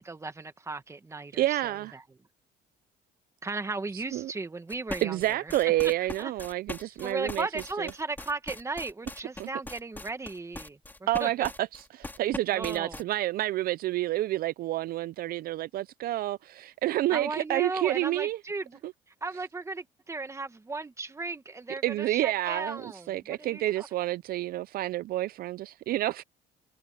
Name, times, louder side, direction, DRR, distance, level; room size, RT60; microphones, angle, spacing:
voice 1, 0.0-2.0 3.4-5.5 6.0-6.3 6.8-10.8 11.2-11.3 12.5-13.0 17.1-18.8 19.2-23.9, right 3 dB, 15° right, 1.8 m, -36 dB
voice 2, 1.3-1.9 3.9-4.3 5.0-7.5 7.8-7.9 9.4-9.5 11.1-18.4 21.8-26.2, right 15 dB, 60° right, 0.4 m, -29 dB
sound 1, 4.7-13.0, left 2 dB, 10° left, 3.3 m, -40 dB
cardioid pair, 110°, 17 cm